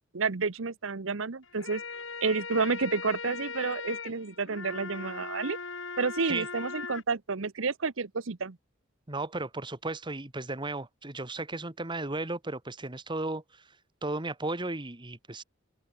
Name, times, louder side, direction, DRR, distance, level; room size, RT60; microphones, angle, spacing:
voice 1, 0.1-1.8 2.2-5.6 6.0-8.6, right 4 dB, 80° right, 1.0 m, -30 dB
sound 1, 1.4-7.0, left 5 dB, 70° left, 3.8 m, -39 dB
voice 2, 9.1-13.6 14.0-15.4, right 2 dB, 25° right, 1.7 m, -35 dB
open air
head